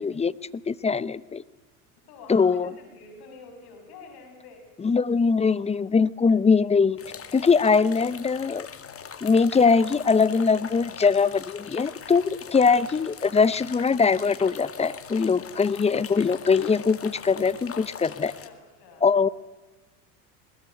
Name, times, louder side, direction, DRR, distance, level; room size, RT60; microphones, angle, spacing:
voice 1, 0.0-1.4 2.3-2.7 4.8-7.0 7.3-8.7 9.2-18.3 19.0-19.3, left 5 dB, 15° left, 18 dB, 0.7 m, -22 dB
voice 2, 2.1-4.6 18.1-19.1, left 4 dB, 55° left, 4 dB, 7.3 m, -47 dB
sound 1, 7.0-18.5, left 7 dB, 30° left, 2.0 m, -41 dB
20.5 x 20.5 x 9.0 m, 1.2 s
supercardioid pair, 95°, 44 cm